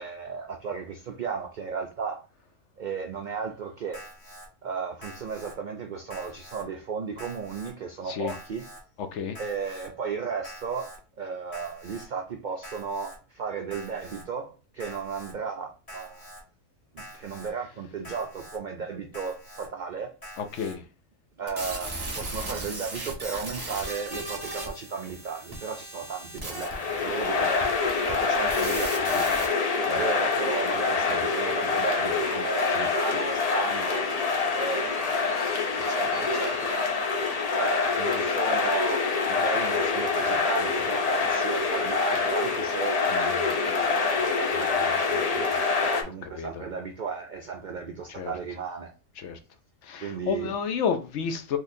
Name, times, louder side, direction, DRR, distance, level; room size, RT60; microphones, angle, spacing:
voice 1, 0.0-2.2 2.8-4.0 4.6-8.7 9.4-16.3 16.9-20.1 21.4-29.3 29.8-34.1 34.5-36.9 37.5-48.9 50.0-50.5, right 5 dB, 75° right, 0.4 m, -35 dB
Alarm, 3.9-4.5 5.0-5.5 6.1-6.6 7.2-7.7 8.3-8.8 9.3-9.9 10.4-11.0 11.5-12.1 12.6-13.2 13.7-14.2 14.8-15.3 15.9-16.4 17.0-17.5 18.0-18.6 19.1-19.7 20.2-20.7, equal, 30° left, 1.2 m, -45 dB
voice 2, 9.0-9.4 20.4-20.8 29.8-30.1 31.1-31.2 46.4-46.6 48.2-48.3 49.2-49.4 49.8-51.6, left 7 dB, 65° left, 0.8 m, -31 dB
sound 1, 21.5-29.5, right 2 dB, 20° right, 0.7 m, -37 dB
sound 2, 26.5-46.0, left 4 dB, 50° left, 0.5 m, -26 dB
3.9 x 3.1 x 2.6 m
omnidirectional pair, 1.4 m